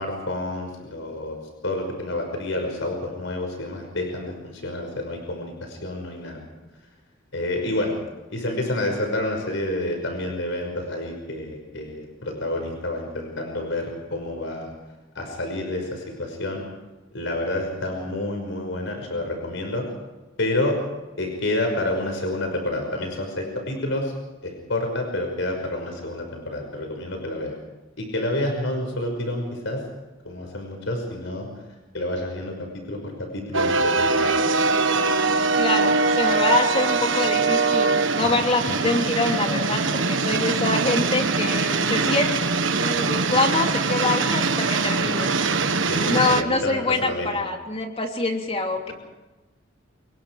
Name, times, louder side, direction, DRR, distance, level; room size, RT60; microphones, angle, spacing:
voice 1, 0.0-1.4 1.6-6.4 7.3-8.0 8.3-14.7 15.1-16.6 17.1-19.8 20.4-20.8 21.2-24.1 24.4-27.6 28.0-29.8 30.2-31.5 31.9-32.5 32.9-34.3 38.7-38.8 45.9-47.4, left 1 dB, 70° left, 3 dB, 5.7 m, -29 dB
sound 1, 33.5-46.4, right 4 dB, 70° right, 1.5 m, -22 dB
voice 2, 35.6-42.4 42.6-45.3 46.1-48.9, left 2 dB, 30° left, 3 dB, 3.0 m, -25 dB
27.0 x 22.5 x 4.9 m, 1.1 s
head